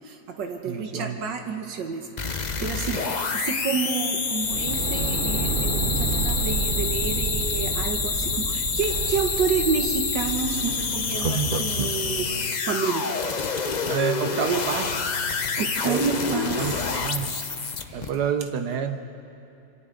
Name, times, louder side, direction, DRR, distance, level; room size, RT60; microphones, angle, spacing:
voice 1, 0.0-2.0 2.3-3.0 3.3-13.1 15.6-16.8 17.9-18.1, right 6 dB, 85° right, 4 dB, 1.8 m, -29 dB
voice 2, 0.7-1.2 13.8-15.1 15.8-16.0 16.6-17.5 17.9-19.0, right 7 dB, 70° right, 8 dB, 1.4 m, -28 dB
sound 1, 2.2-18.1, left 5 dB, 45° left, 0.5 m, -28 dB
sound 2, 4.4-12.0, right 5 dB, 40° right, 0.8 m, -30 dB
26.5 x 26.0 x 3.9 m, 2.6 s
omnidirectional pair, 1.9 m